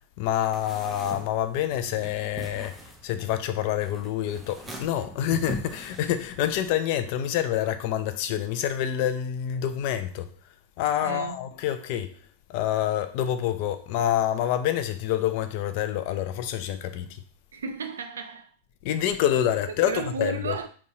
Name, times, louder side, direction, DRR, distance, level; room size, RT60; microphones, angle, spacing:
voice 1, 0.2-2.8 3.0-10.3 10.8-12.1 12.5-17.2 18.8-20.6, left 11 dB, 45° left, 0.4 m, -27 dB
sound 1, 0.5-6.7, right 1 dB, 10° right, 0.6 m, -42 dB
voice 2, 11.0-11.4 17.5-18.5 19.8-20.7, right 5 dB, 65° right, 0.4 m, -33 dB
3.8 x 2.3 x 2.7 m
figure-of-eight pair, 90°, 0 cm